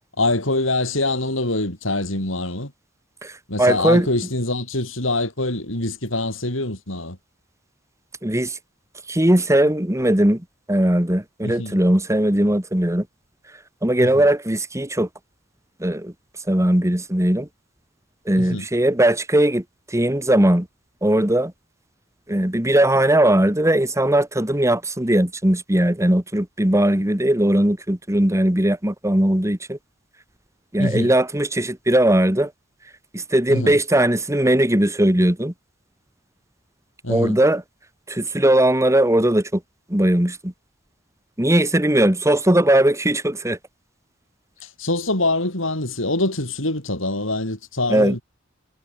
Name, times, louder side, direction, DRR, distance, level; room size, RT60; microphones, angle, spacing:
voice 1, 0.2-2.7 3.5-7.2 11.4-11.8 14.0-14.2 18.4-18.7 30.8-31.1 33.5-33.8 37.0-37.4 44.6-48.2, left 2 dB, 70° left, 6.9 m, -24 dB
voice 2, 3.6-4.1 8.2-8.6 9.1-10.4 10.7-13.1 13.8-15.1 15.8-16.1 16.5-17.5 18.3-20.7 21.0-21.5 22.3-29.8 30.7-32.5 33.1-35.5 37.1-37.6 38.1-39.6 39.9-40.5 41.4-43.6 47.9-48.2, right 1 dB, 15° right, 2.3 m, -19 dB
head